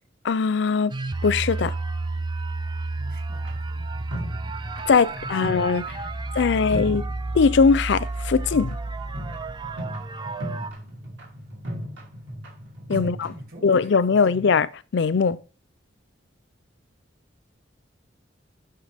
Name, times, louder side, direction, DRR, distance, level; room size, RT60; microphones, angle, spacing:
voice 1, 0.2-0.9 1.2-1.7 4.9-5.8 6.4-7.0 7.3-8.8 12.9-13.3 13.6-15.4, left 5 dB, 65° left, 0.4 m, -20 dB
sound 1, 0.9-10.7, right 2 dB, 25° right, 0.4 m, -31 dB
voice 2, 2.9-4.5 5.1-7.2 12.9-14.4, right 1 dB, 55° right, 2.5 m, -45 dB
sound 2, 3.4-6.4 6.7-7.6 7.9-13.5, equal, 80° right, 2.9 m, -37 dB
11.5 x 5.7 x 3.5 m
head